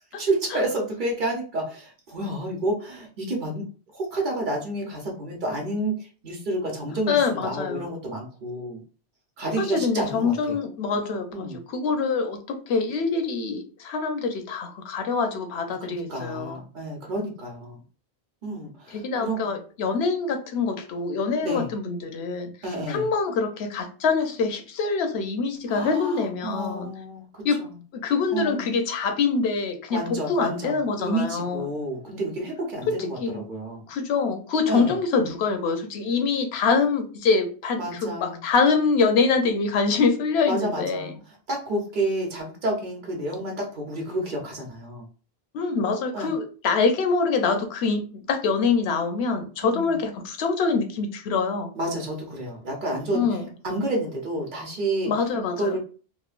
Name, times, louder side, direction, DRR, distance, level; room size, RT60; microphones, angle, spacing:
voice 1, 0.2-3.7 3.9-8.8 9.4-10.6 11.3-11.6 15.8-17.8 18.4-19.5 21.4-21.7 22.6-23.1 25.7-27.8 28.3-28.7 29.9-33.9 34.7-35.0 37.8-38.4 40.4-41.1 41.5-45.0 46.1-46.3 49.6-50.0 51.7-55.1 55.6-55.8, right 1 dB, 55° right, 0 dB, 0.8 m, -30 dB
voice 2, 7.1-7.9 9.6-16.6 18.9-22.5 22.9-26.9 27.4-27.6 27.9-31.6 33.2-33.4 33.9-41.1 45.5-51.7 53.1-53.5 55.1-55.8, left 4 dB, 85° left, 6 dB, 0.8 m, -25 dB
3.0 x 2.1 x 2.4 m, 0.38 s
omnidirectional pair, 1.1 m